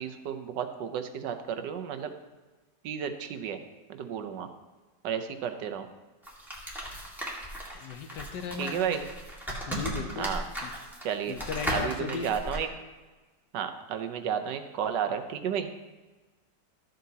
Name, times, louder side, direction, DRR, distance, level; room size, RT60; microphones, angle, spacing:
voice 1, 0.0-2.1 2.8-3.6 3.9-4.5 5.0-5.9 8.6-9.0 10.2-10.4 11.0-11.4 11.7-12.7 13.5-15.7, right 8 dB, 80° right, 8 dB, 1.4 m, -32 dB
sound 1, 6.2-12.6, right 1 dB, ahead, 1.7 m, -36 dB
voice 2, 7.7-8.9 9.7-10.3 10.6-10.7 11.3-12.3, left 6 dB, 80° left, 7 dB, 1.4 m, -36 dB
13.5 x 7.7 x 2.8 m, 1.3 s
omnidirectional pair, 1.9 m